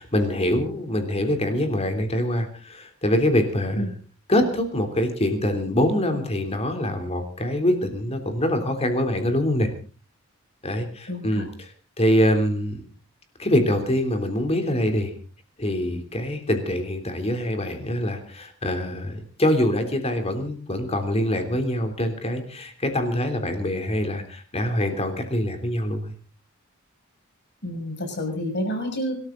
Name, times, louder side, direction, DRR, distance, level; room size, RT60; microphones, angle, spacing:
voice 1, 0.0-4.0 4.3-9.7 10.6-11.7 12.0-12.8 13.4-15.1 15.6-26.1, left 1 dB, 30° left, 7 dB, 3.3 m, -24 dB
voice 2, 11.1-11.4 27.6-29.1, equal, 55° left, 4 dB, 6.4 m, -29 dB
25.0 x 13.5 x 3.9 m, 0.37 s
head